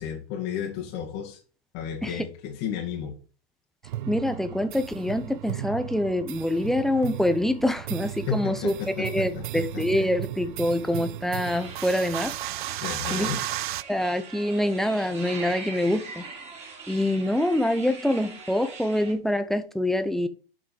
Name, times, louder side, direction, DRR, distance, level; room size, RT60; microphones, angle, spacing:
voice 1, 0.0-1.4 1.7-3.2 8.3-9.8 12.8-13.4, left 8 dB, 40° left, 2.0 m, -32 dB
sound 1, 3.8-13.8, right 14 dB, 60° right, 0.5 m, -35 dB
voice 2, 4.1-12.3 13.1-13.3 13.9-16.2 16.9-20.3, left 1 dB, ahead, 0.9 m, -25 dB
sound 2, 11.4-19.1, right 4 dB, 20° right, 3.4 m, -42 dB
7.7 x 6.0 x 7.4 m
hypercardioid pair, 110°, 29 cm